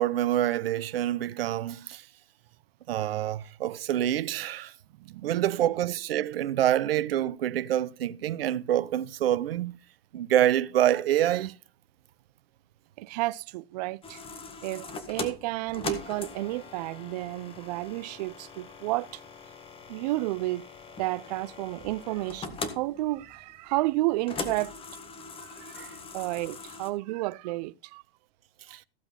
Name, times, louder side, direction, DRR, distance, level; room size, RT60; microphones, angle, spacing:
voice 1, 0.0-2.1 2.9-4.7 5.2-9.7 10.1-11.6 25.7-26.0 28.7-28.8, right 12 dB, 70° right, 0.8 m, -26 dB
voice 2, 5.0-5.4 13.0-14.2 14.6-19.2 19.9-20.7 21.0-24.7 25.4-25.8 26.1-28.0 28.7-28.8, right 19 dB, 45° right, 0.5 m, -31 dB
sound 1, 14.0-26.9, left 4 dB, 20° left, 1.6 m, -41 dB
15.0 x 7.8 x 4.0 m
hypercardioid pair, 120°, 30 cm